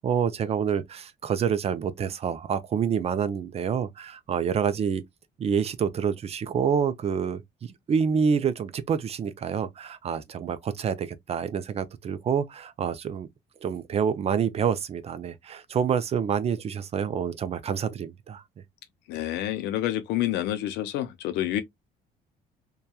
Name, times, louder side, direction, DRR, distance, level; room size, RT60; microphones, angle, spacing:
voice 1, 0.0-5.0 5.4-13.3 13.6-18.4, right 7 dB, 40° right, 0.4 m, -27 dB
voice 2, 19.1-21.6, left 13 dB, 90° left, 0.6 m, -28 dB
2.8 x 2.3 x 2.2 m
cardioid pair, 110°, 17 cm